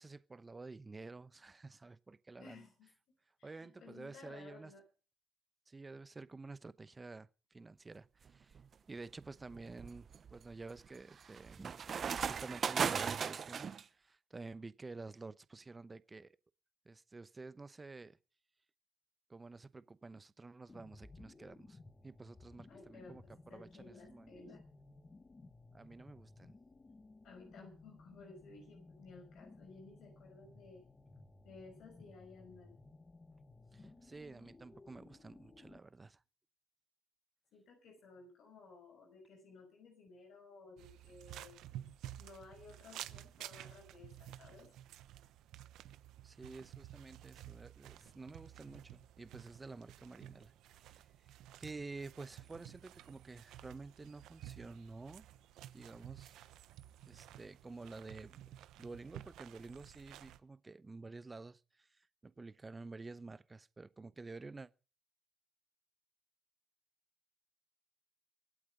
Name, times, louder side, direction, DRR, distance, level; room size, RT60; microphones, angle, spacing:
voice 1, 0.0-2.6 3.4-4.7 5.7-8.6 8.9-11.8 12.2-16.4 16.8-18.2 19.3-21.8 22.0-24.4 25.7-26.6 33.7-36.2 46.2-51.1 51.6-55.3 55.7-56.3 57.1-64.7, right 3 dB, 25° right, 0.9 m, -50 dB
voice 2, 2.4-2.9 3.4-4.8 22.7-24.6 27.2-30.8 31.4-32.7 37.5-41.6 42.2-44.7, left 4 dB, 75° left, 5.8 m, -56 dB
sound 1, 8.3-8.6 9.2-13.8, right 7 dB, 50° right, 0.8 m, -37 dB
sound 2, 20.7-35.8, left 3 dB, 25° left, 1.5 m, -58 dB
sound 3, 40.8-60.4, right 12 dB, 85° right, 0.9 m, -53 dB
23.5 x 8.6 x 5.2 m
cardioid pair, 90°, 0 cm